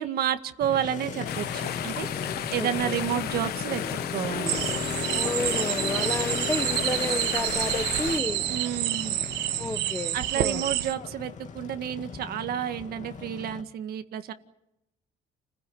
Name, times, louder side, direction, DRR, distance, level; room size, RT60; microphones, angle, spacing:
voice 1, 0.0-2.1 2.5-3.8 4.1-4.6 8.5-9.2 10.1-14.3, right 10 dB, 65° right, 1.8 m, -30 dB
Motorcycle, 0.6-13.6, left 5 dB, 45° left, 2.6 m, -36 dB
sound 1, 1.2-8.2, left 12 dB, 65° left, 1.1 m, -34 dB
voice 2, 2.5-3.0 5.1-8.4 9.6-10.7, left 2 dB, 15° left, 1.4 m, -32 dB
sound 2, 4.5-10.9, right 14 dB, 85° right, 1.5 m, -29 dB
30.0 x 16.0 x 9.4 m
cardioid pair, 110°, 17 cm